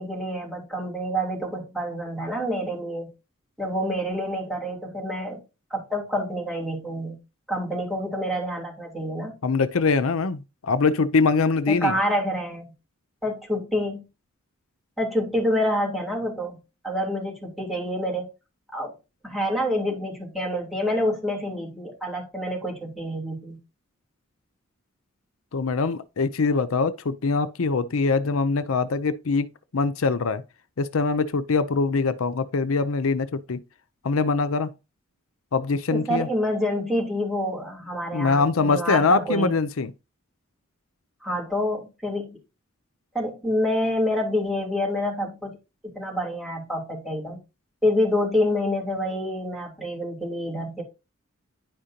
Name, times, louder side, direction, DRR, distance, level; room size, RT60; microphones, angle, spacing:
voice 1, 0.0-3.1 3.6-5.4 5.7-7.2 7.5-9.3 11.7-12.7 13.2-14.0 15.0-16.6 16.8-18.3 18.7-18.9 19.2-23.6 35.9-39.6 41.2-42.4 43.1-45.6 45.9-47.4 47.8-50.8, equal, ahead, 3.3 m, -27 dB
voice 2, 9.4-12.0 25.5-30.4 30.8-33.6 34.0-34.7 35.5-36.3 38.1-39.9, left 4 dB, 85° left, 0.6 m, -23 dB
10.5 x 5.1 x 2.8 m
head